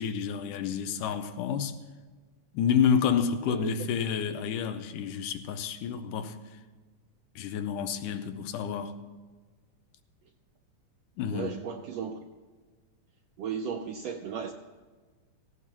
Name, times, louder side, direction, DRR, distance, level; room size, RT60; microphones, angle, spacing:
voice 1, 0.0-1.8 2.5-6.4 7.4-9.0 11.2-11.6, left 7 dB, 90° left, 2.3 m, -29 dB
voice 2, 11.3-12.2 13.4-14.5, right 7 dB, 80° right, 1.5 m, -35 dB
17.5 x 16.0 x 2.9 m
omnidirectional pair, 3.7 m